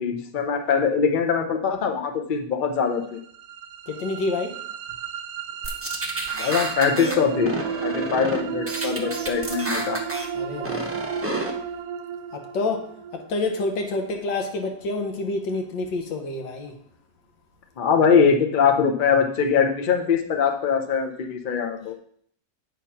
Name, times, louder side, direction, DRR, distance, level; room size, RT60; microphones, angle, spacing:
voice 1, 0.0-3.2 6.3-7.5 7.8-10.0 17.8-21.9, left 6 dB, 55° left, 4 dB, 0.5 m, -22 dB
sound 1, 3.1-15.1, right 8 dB, 70° right, 0.9 m, -33 dB
voice 2, 3.9-4.5 10.4-10.9 12.3-12.8 13.1-16.7, left 3 dB, 75° left, 4 dB, 1.8 m, -28 dB
sound 2, 5.6-7.2 7.5-8.4 8.7-10.3 10.6-11.5, right 1 dB, 20° right, 0.3 m, -30 dB
8.2 x 3.7 x 5.7 m, 0.62 s
omnidirectional pair, 2.0 m